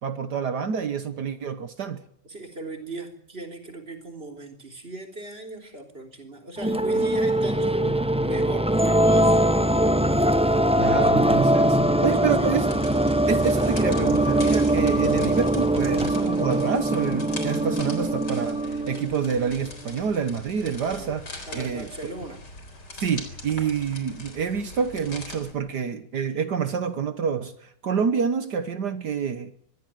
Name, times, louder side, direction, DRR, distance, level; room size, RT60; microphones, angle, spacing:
voice 1, 0.0-2.0 10.8-12.8 13.3-22.1 22.9-29.5, right 6 dB, 65° right, 1.8 m, -28 dB
voice 2, 2.3-9.6 10.4-11.3 12.0-12.6 20.6-21.1 21.5-22.4, right 2 dB, 35° right, 3.8 m, -38 dB
sound 1, 6.6-19.5, right 1 dB, 5° right, 0.7 m, -22 dB
sound 2, 12.5-25.5, left 2 dB, 70° left, 4.5 m, -41 dB
23.5 x 15.5 x 9.2 m
omnidirectional pair, 1.9 m